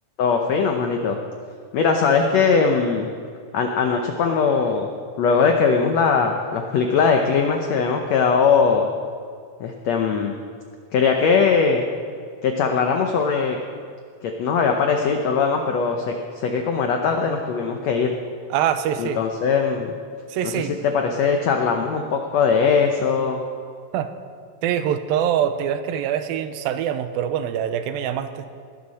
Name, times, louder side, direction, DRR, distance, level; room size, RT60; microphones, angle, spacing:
voice 1, 0.2-1.2 1.7-3.1 3.5-4.9 5.2-8.9 9.6-10.4 10.9-11.8 12.4-13.6 14.2-18.1 19.0-19.9 20.4-23.4, left 5 dB, 85° left, 3 dB, 1.5 m, -20 dB
voice 2, 18.5-19.2 20.3-20.7 23.9-24.1 24.6-28.5, right 9 dB, 85° right, 10 dB, 2.4 m, -24 dB
20.5 x 11.5 x 4.2 m, 2.1 s
omnidirectional pair, 4.3 m